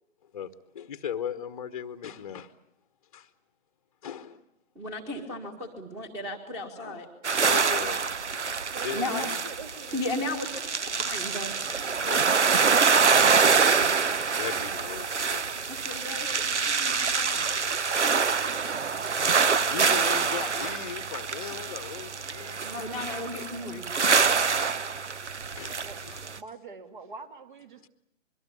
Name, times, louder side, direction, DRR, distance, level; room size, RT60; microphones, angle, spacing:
voice 1, 0.7-2.5 3.1-3.3 4.0-4.4 6.8-7.0 7.4-8.0 8.8-9.3 11.0-11.1 12.0-12.7 14.4-15.4 15.9-16.0 17.9-22.8 25.6-26.2, left 8 dB, 30° left, 1.1 m, -38 dB
voice 2, 4.7-7.1 8.9-9.2 9.9-10.6 11.1-11.5 15.5-17.5 22.6-23.9, left 2 dB, 5° right, 1.7 m, -35 dB
sound 1, 7.2-26.4, right 5 dB, 65° right, 1.0 m, -26 dB
voice 3, 8.7-10.0 25.7-26.0 26.4-27.9, right 4 dB, 40° right, 2.2 m, -44 dB
25.5 x 22.5 x 8.6 m
figure-of-eight pair, 140°, 38 cm